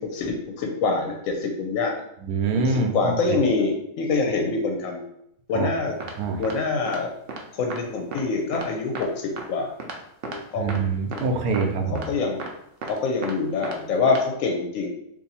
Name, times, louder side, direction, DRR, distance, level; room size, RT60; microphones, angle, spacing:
voice 1, 0.0-1.9 2.9-5.0 5.5-6.0 6.4-7.1 7.5-9.7 10.2-10.8 11.1-11.7 12.1-12.4 12.8-14.9, left 4 dB, 70° left, 2 dB, 0.9 m, -25 dB
voice 2, 2.2-3.1 5.5-5.7 6.2-6.4 10.6-12.0, right 4 dB, 85° right, 5 dB, 1.1 m, -25 dB
sound 1, 6.0-6.1 6.4-6.5 6.9-7.0 7.3-7.4 7.7-7.8 8.1-8.2 8.5-8.7 8.9-9.1 9.4-9.5 9.8-10.0 10.2-10.4 10.7-10.8 11.1-11.3 11.5-11.6 12.0-12.1 12.4-12.5 12.8-13.3 13.6-13.8 14.1-14.2, right 4 dB, 65° right, 0.6 m, -34 dB
2.7 x 2.5 x 4.0 m, 0.75 s
omnidirectional pair, 1.5 m